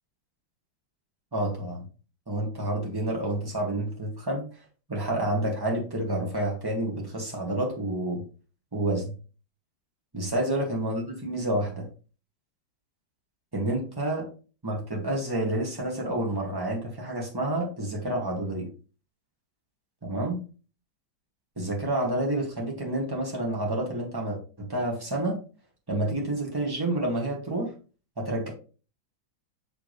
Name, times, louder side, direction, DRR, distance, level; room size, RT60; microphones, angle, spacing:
voice 1, 1.3-1.8 2.3-4.4 4.9-8.2 8.7-9.1 10.1-11.9 13.5-14.2 14.6-18.7 20.0-20.4 21.6-25.4 25.9-27.7 28.2-28.5, right 1 dB, 10° right, -1 dB, 1.7 m, -29 dB
6.3 x 4.7 x 3.2 m, 0.36 s
omnidirectional pair, 2.2 m